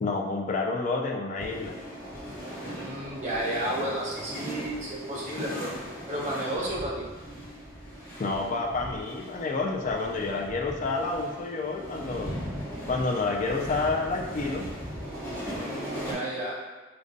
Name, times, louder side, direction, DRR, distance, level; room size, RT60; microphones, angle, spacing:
voice 1, 0.0-1.7 8.2-12.3 12.9-14.7, left 3 dB, 35° left, 1 dB, 0.3 m, -29 dB
sound 1, 1.4-16.1, equal, 10° left, 0.9 m, -38 dB
voice 2, 2.6-5.7 6.1-7.1 15.5-16.6, right 1 dB, 35° right, -6 dB, 0.8 m, -32 dB
5.0 x 2.2 x 2.5 m, 1.3 s
head